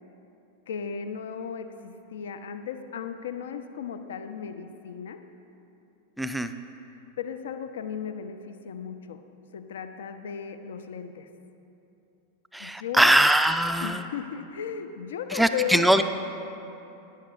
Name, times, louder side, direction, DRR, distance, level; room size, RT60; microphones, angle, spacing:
voice 1, 0.7-5.2 7.2-9.2 9.5-11.3 12.6-13.3 13.8-15.9, left 7 dB, 60° left, 9 dB, 0.4 m, -35 dB
voice 2, 6.2-6.5 12.5-14.0 15.3-16.0, right 1 dB, 5° right, 9 dB, 0.4 m, -21 dB
12.0 x 10.0 x 2.4 m, 2.9 s
figure-of-eight pair, 90°, 0 cm